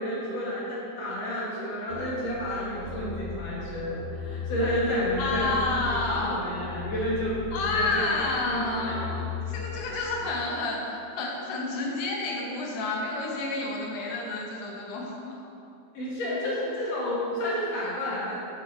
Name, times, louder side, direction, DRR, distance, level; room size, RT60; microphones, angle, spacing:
voice 1, 0.0-5.6 6.1-9.0 15.9-18.3, equal, 55° left, -7 dB, 2.3 m, -30 dB
sound 1, 1.9-10.2, left 5 dB, 85° left, 2.5 m, -37 dB
voice 2, 5.2-6.4 7.5-15.5, left 3 dB, 70° left, -1 dB, 2.3 m, -30 dB
7.8 x 5.6 x 4.2 m, 2.7 s
omnidirectional pair, 4.1 m